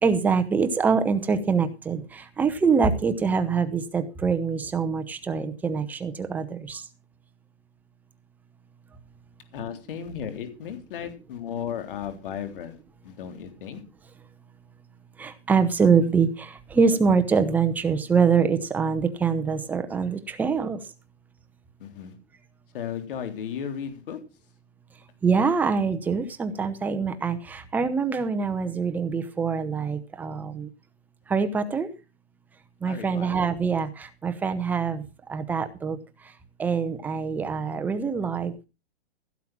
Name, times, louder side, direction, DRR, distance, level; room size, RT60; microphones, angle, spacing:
voice 1, 0.0-6.8 15.2-20.8 25.2-30.7 31.3-31.9 32.8-36.0 36.6-38.5, right 5 dB, 5° right, 8 dB, 0.7 m, -24 dB
voice 2, 9.5-12.8 13.0-13.8 21.8-22.1 22.7-24.2 32.9-33.4, left 8 dB, 50° left, 7 dB, 3.6 m, -35 dB
16.0 x 7.6 x 6.0 m, 0.31 s
hypercardioid pair, 160°, 33 cm